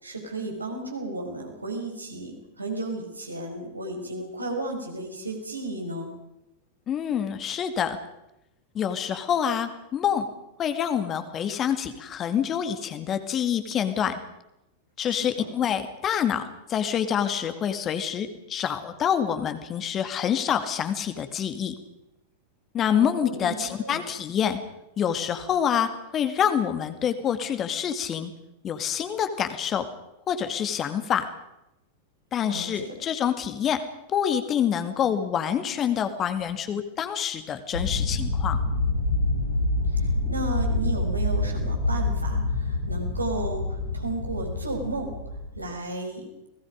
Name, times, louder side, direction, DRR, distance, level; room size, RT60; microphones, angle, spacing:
voice 1, 0.0-6.1 15.0-15.5 22.9-24.0 32.4-32.9 39.9-45.2 45.5-46.3, right 2 dB, 80° right, 2 dB, 5.0 m, -34 dB
voice 2, 6.9-8.0 8.7-10.3 10.6-14.2 15.0-21.8 22.7-24.6 25.0-28.3 28.6-29.9 30.3-31.3 32.3-33.8 34.1-38.6, left 8 dB, 30° left, 9 dB, 2.2 m, -26 dB
sound 1, 37.7-45.6, left 2 dB, 85° left, 5.0 m, -27 dB
29.5 x 19.0 x 5.2 m, 0.89 s
figure-of-eight pair, 90°, 0 cm